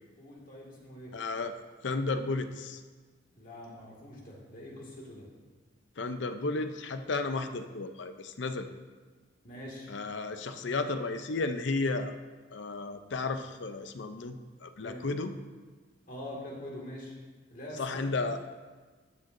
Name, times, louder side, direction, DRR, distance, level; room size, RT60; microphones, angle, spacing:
voice 1, 0.2-1.1 3.3-5.3 9.4-9.9 14.8-15.1 16.1-17.2 17.5-18.1, left 1 dB, 45° left, -3 dB, 2.0 m, -44 dB
voice 2, 1.1-1.5 1.8-2.8 6.0-8.7 9.9-12.1 12.5-15.4 17.8-18.4, left 3 dB, 65° left, 9 dB, 0.6 m, -33 dB
13.5 x 7.5 x 2.6 m, 1.4 s
head